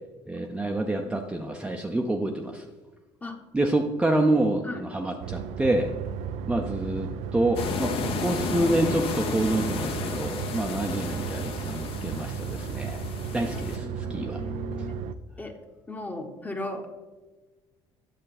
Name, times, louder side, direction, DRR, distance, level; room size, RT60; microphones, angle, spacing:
voice 1, 0.3-2.7 3.5-5.9 6.5-13.0 13.3-14.4, right 1 dB, 10° right, 2 dB, 0.6 m, -27 dB
voice 2, 0.8-1.2 3.2-3.4 4.6-4.8 13.5-15.0 15.4-15.5 15.9-16.9, left 2 dB, 15° left, 5 dB, 1.0 m, -37 dB
sound 1, 5.2-15.2, right 7 dB, 85° right, 0.4 m, -34 dB
sound 2, 7.6-13.8, left 5 dB, 55° left, 1.0 m, -33 dB
9.0 x 6.6 x 4.1 m, 1.2 s
cardioid pair, 115°, 11 cm